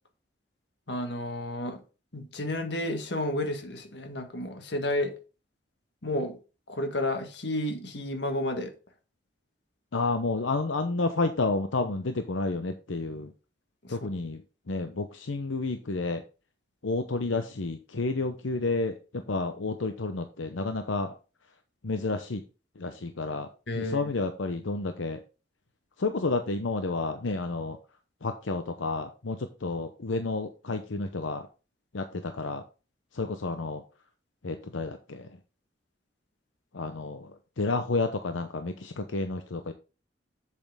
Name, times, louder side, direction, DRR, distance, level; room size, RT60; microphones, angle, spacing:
voice 1, 0.9-1.8 2.1-5.1 6.0-6.4 6.7-8.7 14.0-14.1 23.7-24.1, left 1 dB, 65° left, 6 dB, 1.6 m, -31 dB
voice 2, 9.9-13.3 13.9-14.4 14.7-16.2 16.8-21.1 21.8-22.4 22.8-23.5 23.7-25.2 26.0-27.8 28.2-31.5 31.9-32.6 33.1-33.8 34.4-35.3 36.7-37.3 37.6-39.7, left 3 dB, 85° left, 8 dB, 0.8 m, -30 dB
7.7 x 7.3 x 3.5 m, 0.33 s
head